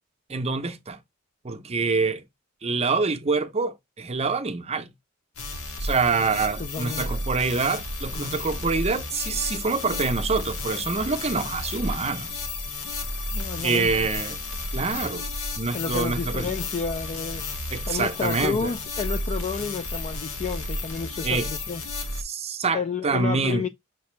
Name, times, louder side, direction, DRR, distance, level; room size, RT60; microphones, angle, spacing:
voice 1, 0.3-1.0 1.4-2.2 2.6-4.9 5.8-12.3 13.6-14.4 14.7-15.3 15.6-16.5 17.7-18.7 21.2-21.5 22.2-23.7, right 4 dB, 30° right, 0.6 m, -26 dB
sound 1, 5.4-22.2, left 2 dB, 75° left, 1.1 m, -32 dB
voice 2, 6.6-7.1 13.3-14.1 15.7-17.4 17.9-21.8 22.7-23.7, left 5 dB, 30° left, 0.3 m, -31 dB
5.8 x 2.7 x 3.2 m
head